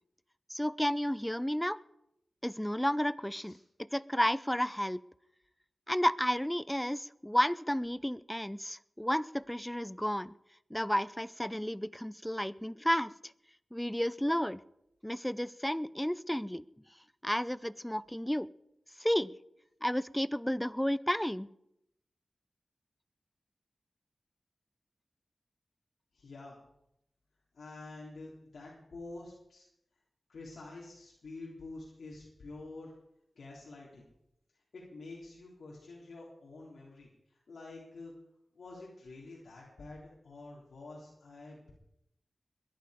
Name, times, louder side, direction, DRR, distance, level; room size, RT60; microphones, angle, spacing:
voice 1, 0.5-1.8 2.4-5.0 5.9-10.3 10.7-13.1 13.7-14.6 15.0-16.7 17.2-18.5 19.0-19.3 19.8-21.5, equal, 5° left, 18 dB, 0.6 m, -32 dB
voice 2, 26.1-26.6 27.5-29.6 30.3-32.9 33.4-34.0 34.7-38.1 38.5-41.7, left 2 dB, 85° left, -4 dB, 3.7 m, -48 dB
21.5 x 11.5 x 5.1 m, 0.81 s
wide cardioid pair, 60°, 0 cm